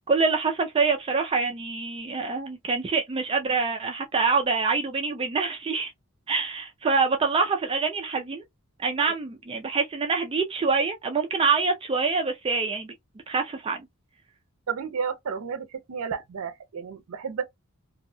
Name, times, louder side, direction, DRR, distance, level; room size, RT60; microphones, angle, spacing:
voice 1, 0.1-5.9 6.3-8.4 8.8-12.9 13.3-13.8, right 4 dB, 25° right, 0.3 m, -25 dB
voice 2, 14.7-17.4, right 6 dB, 85° right, 0.5 m, -32 dB
2.7 x 2.1 x 2.6 m
head